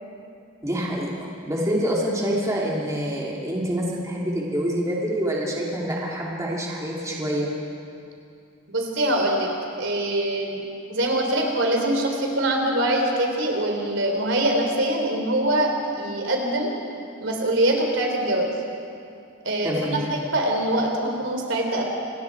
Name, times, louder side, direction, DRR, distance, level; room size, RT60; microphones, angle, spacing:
voice 1, 0.6-7.5 19.6-20.1, equal, 15° right, -4 dB, 2.7 m, -26 dB
voice 2, 8.7-9.5 9.8-10.6 10.9-16.7 17.2-18.6 19.4-20.0 20.3-21.8, right 1 dB, 70° right, 1 dB, 3.5 m, -23 dB
27.0 x 20.5 x 4.7 m, 2.5 s
head